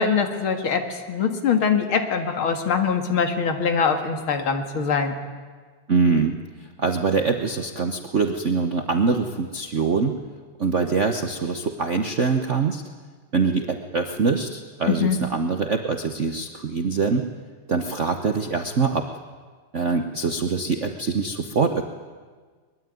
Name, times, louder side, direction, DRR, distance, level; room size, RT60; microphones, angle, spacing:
voice 1, 0.0-5.2 14.9-15.2, left 6 dB, 70° left, 6 dB, 2.8 m, -23 dB
voice 2, 5.9-6.3 6.8-10.2 10.6-12.8 13.3-17.2 17.7-19.1 19.7-21.8, right 4 dB, 45° right, 5 dB, 1.1 m, -23 dB
23.0 x 21.5 x 9.4 m, 1.5 s
omnidirectional pair, 2.4 m